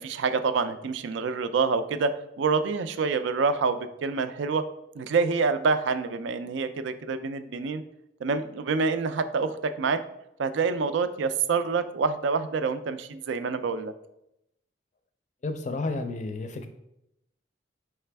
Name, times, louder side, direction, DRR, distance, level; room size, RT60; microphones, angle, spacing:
voice 1, 0.0-4.6 5.0-7.8 8.2-10.0 10.4-13.9, right 4 dB, 75° right, 11 dB, 0.4 m, -27 dB
voice 2, 15.4-16.7, left 3 dB, 40° left, 8 dB, 0.4 m, -31 dB
4.8 x 3.2 x 3.3 m, 0.82 s
head